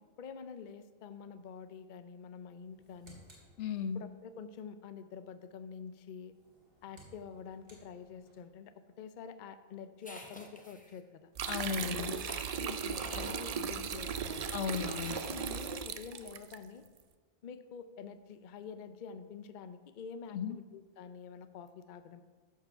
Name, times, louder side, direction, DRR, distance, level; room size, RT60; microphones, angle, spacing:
voice 1, 0.0-3.2 3.9-6.3 6.8-11.3 11.8-12.2 12.6-14.5 15.2-16.8 17.4-22.2, left 6 dB, 55° left, 10 dB, 0.6 m, -47 dB
sound 1, 2.6-4.2 6.2-8.5, right 2 dB, 90° right, 2.6 m, -61 dB
voice 2, 3.6-4.0 11.5-12.1 14.5-15.2 20.3-20.6, left 7 dB, 85° left, 11 dB, 1.0 m, -35 dB
sound 2, 10.0-11.0 12.2-13.4 14.7-15.7, left 1 dB, 10° left, 0.8 m, -48 dB
sound 3, 11.4-16.6, right 7 dB, 60° right, 0.4 m, -37 dB
13.5 x 4.8 x 5.6 m, 1.5 s
omnidirectional pair, 1.2 m